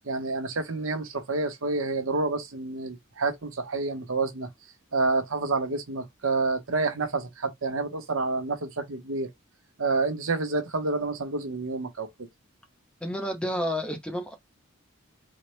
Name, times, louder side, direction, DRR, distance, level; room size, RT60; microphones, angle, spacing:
voice 1, 0.0-4.5 4.9-9.3 9.8-12.3, right 3 dB, 75° right, 0.8 m, -28 dB
voice 2, 13.0-14.3, equal, 5° left, 0.6 m, -30 dB
4.1 x 2.0 x 3.1 m
head